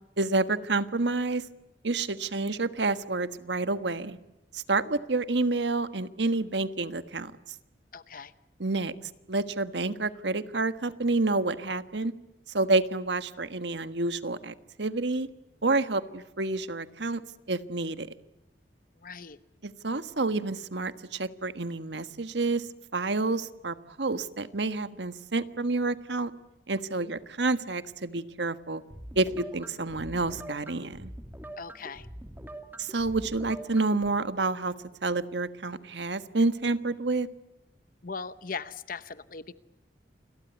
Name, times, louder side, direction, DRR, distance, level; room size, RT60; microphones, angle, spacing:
voice 1, 0.2-1.4 1.8-4.2 4.5-7.3 8.6-8.9 9.3-12.1 12.5-15.3 15.6-17.2 17.5-18.1 19.6-22.7 22.9-26.3 26.7-28.8 29.1-31.1 32.8-34.7 35.0-37.3, right 3 dB, 75° right, 12 dB, 1.4 m, -29 dB
voice 2, 7.9-8.3 19.0-19.4 27.0-27.1 31.6-32.1 38.0-39.5, left 5 dB, 50° left, 14 dB, 0.9 m, -39 dB
sound 1, 28.9-34.1, right 1 dB, 10° right, 2.7 m, -44 dB
29.0 x 22.5 x 8.2 m, 0.96 s
head